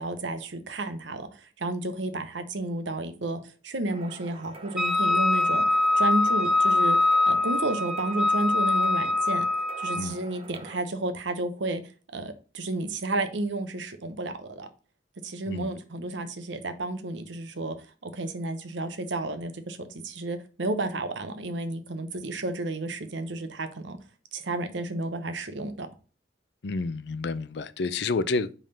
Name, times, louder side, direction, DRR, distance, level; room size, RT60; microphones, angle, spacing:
voice 1, 0.0-9.5 9.8-11.8 12.1-14.7 15.2-17.8 18.0-24.0 24.3-25.9, right 2 dB, 75° right, 0.9 m, -32 dB
sound 1, 3.9-10.8, right 2 dB, 30° right, 0.8 m, -46 dB
Wind instrument woodwind instrument, 4.8-10.1, left 2 dB, 5° right, 0.5 m, -23 dB
voice 2, 26.6-28.5, left 3 dB, 60° left, 0.5 m, -29 dB
5.3 x 3.6 x 5.6 m
head